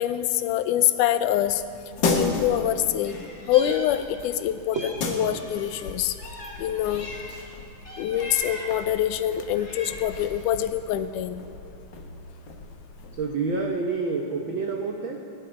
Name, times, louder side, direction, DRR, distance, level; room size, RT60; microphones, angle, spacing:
voice 1, 0.0-1.6 2.1-3.2 3.5-6.2 6.6-7.1 8.0-11.4, left 11 dB, 90° left, 11 dB, 2.2 m, -25 dB
sound 1, 1.4-13.4, left 3 dB, 55° left, 1.2 m, -35 dB
Meow, 3.0-4.4 4.7-7.5 7.8-8.8 9.4-10.2, left 1 dB, 25° left, 2.2 m, -40 dB
voice 2, 13.2-15.2, right 4 dB, 85° right, 2 dB, 1.0 m, -28 dB
17.5 x 7.5 x 9.8 m, 2.7 s
omnidirectional pair, 3.6 m